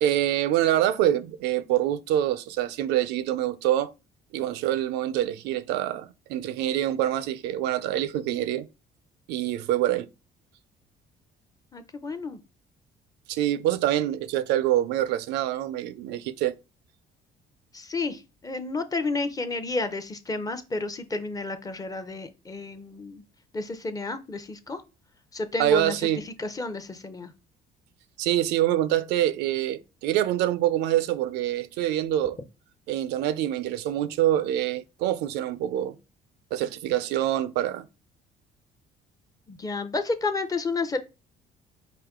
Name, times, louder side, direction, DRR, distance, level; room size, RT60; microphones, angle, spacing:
voice 1, 0.0-3.9 4.3-8.7 9.3-10.1 13.3-16.6 25.6-26.2 28.2-32.4 32.9-36.0 36.5-37.9, right 12 dB, 85° right, 0.4 m, -25 dB
voice 2, 11.7-12.4 17.7-23.2 23.5-24.8 25.3-25.9 26.4-27.3 39.5-41.0, left 3 dB, 20° left, 0.6 m, -31 dB
4.9 x 2.7 x 3.6 m
cardioid pair, 110°, 17 cm